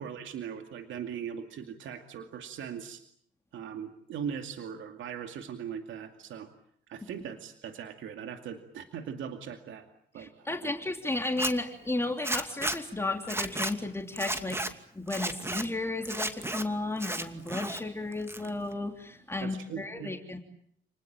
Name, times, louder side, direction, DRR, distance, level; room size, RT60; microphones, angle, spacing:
voice 1, 0.0-3.0 3.5-6.5 6.9-9.9 10.1-10.7 19.4-20.1, right 7 dB, 75° right, 6 dB, 2.5 m, -40 dB
voice 2, 10.2-14.6 14.9-20.4, left 2 dB, 10° left, 3 dB, 3.2 m, -33 dB
Zipper (clothing), 11.2-11.5 12.2-12.8 13.2-13.7 14.2-14.7 15.1-15.6 16.1-16.6 17.0-17.8 18.1-18.7, right 1 dB, 10° right, 2.5 m, -33 dB
29.5 x 20.0 x 8.9 m, 0.68 s
cardioid pair, 90°, 20 cm